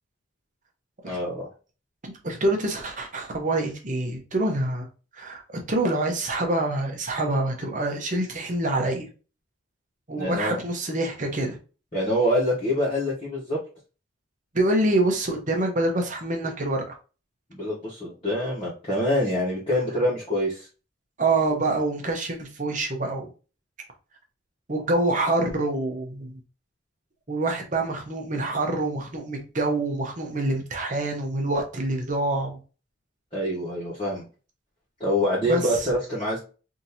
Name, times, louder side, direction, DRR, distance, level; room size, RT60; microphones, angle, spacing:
voice 1, 1.0-1.5 10.2-10.6 11.9-13.6 17.5-20.7 33.3-34.2 35.0-36.4, equal, 30° left, 1.2 m, -25 dB
voice 2, 2.0-4.9 5.2-5.4 5.7-9.1 10.1-11.6 14.5-16.9 21.2-23.3 24.7-26.4 27.3-32.6 35.4-35.8, right 2 dB, 40° right, 0.8 m, -26 dB
3.6 x 2.7 x 2.7 m
head